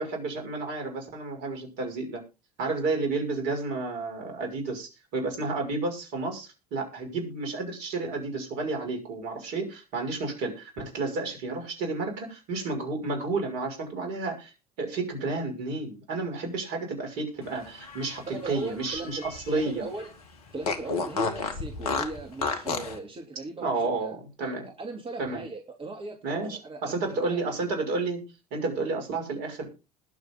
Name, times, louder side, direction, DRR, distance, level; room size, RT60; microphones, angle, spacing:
voice 1, 0.0-2.2 2.6-14.5 14.8-19.2 19.5-19.9 23.6-24.6 25.2-25.4 26.2-28.2 28.5-29.7, right 3 dB, 60° right, 4 dB, 6.1 m, -31 dB
Fart, 17.6-19.7 20.0-20.1 20.6-23.0, left 4 dB, 75° left, 2.2 m, -31 dB
voice 2, 18.3-20.1 20.5-24.1 24.6-27.4, right 2 dB, 30° right, 2 dB, 3.2 m, -38 dB
20.5 x 7.1 x 3.9 m, 0.30 s
figure-of-eight pair, 65°, 19 cm